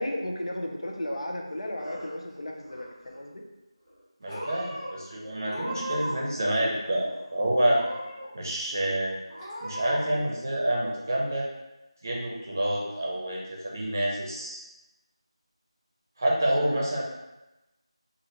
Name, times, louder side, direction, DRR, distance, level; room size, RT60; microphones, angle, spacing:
voice 1, 0.0-3.4 16.6-16.8, left 1 dB, 75° left, 1 dB, 0.6 m, -34 dB
Purr / Meow, 1.5-2.3 2.6-3.2 3.9-4.0 4.3-4.9 5.4-6.3 6.5-7.3 7.7-8.3 8.7-8.8 9.3-10.0, equal, 10° left, 1.0 m, -38 dB
voice 2, 4.2-7.8 8.3-9.2 9.6-11.5 12.0-14.6 16.2-17.0, right 1 dB, 35° right, -3 dB, 0.6 m, -28 dB
3.4 x 2.4 x 2.8 m, 1.0 s
figure-of-eight pair, 175°, 3 cm